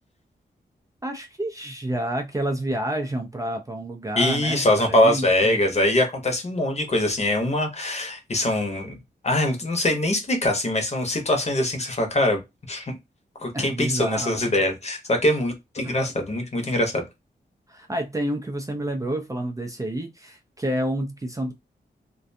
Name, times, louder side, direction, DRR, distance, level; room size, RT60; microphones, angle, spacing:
voice 1, 1.0-5.6 13.5-14.5 15.8-16.1 17.7-21.5, right 1 dB, 20° right, 0.4 m, -29 dB
voice 2, 4.2-9.0 9.2-12.4 12.7-12.9 13.4-17.0, left 1 dB, 40° left, 0.8 m, -23 dB
2.4 x 2.2 x 2.6 m
wide cardioid pair, 110°, 18 cm